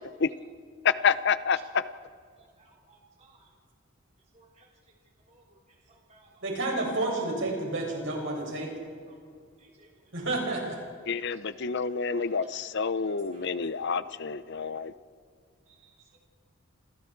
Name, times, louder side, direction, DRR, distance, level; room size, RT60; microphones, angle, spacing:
voice 1, 0.8-1.9 11.1-14.9, left 6 dB, 55° left, 14 dB, 0.7 m, -28 dB
voice 2, 2.4-3.5 4.3-4.7 5.3-6.4 9.1-9.2 9.6-9.9 11.3-11.4 12.2-12.3 12.5-12.6 13.0-13.5 15.7-16.2, right 3 dB, 30° right, -1 dB, 2.9 m, -61 dB
voice 3, 6.4-8.7 10.1-10.8, right 2 dB, 60° right, 0 dB, 7.0 m, -30 dB
28.5 x 27.0 x 4.6 m, 2.1 s
head